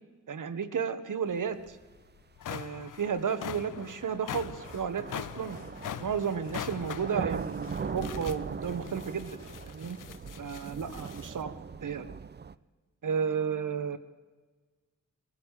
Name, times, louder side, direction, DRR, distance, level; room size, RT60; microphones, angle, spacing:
voice 1, 0.3-1.8 2.5-5.6 6.0-9.4 9.6-10.0 10.4-11.5 11.8-12.1 13.0-14.0, right 6 dB, 70° right, 11 dB, 1.5 m, -33 dB
sound 1, 1.7-1.8 2.2-11.4, left 10 dB, 75° left, 0.6 m, -43 dB
sound 2, 2.0-2.1 3.0-12.5, right 5 dB, 30° right, 0.6 m, -40 dB
sound 3, 4.3-11.3, left 1 dB, 55° left, 4.0 m, -53 dB
21.0 x 15.0 x 8.4 m, 1.3 s
cardioid pair, 70°, 32 cm